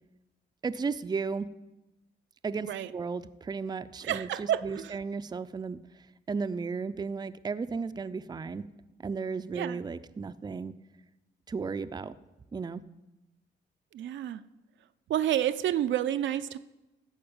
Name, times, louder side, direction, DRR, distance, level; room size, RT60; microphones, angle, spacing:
voice 1, 0.6-1.5 2.4-8.6 9.0-10.7 11.5-12.1 12.5-12.8, right 5 dB, 20° right, 11 dB, 0.5 m, -34 dB
voice 2, 4.0-4.9 9.5-9.8 13.9-14.4 15.1-16.6, right 11 dB, 70° right, 11 dB, 0.5 m, -29 dB
13.5 x 4.7 x 8.6 m, 1.0 s
cardioid pair, 90°, 20 cm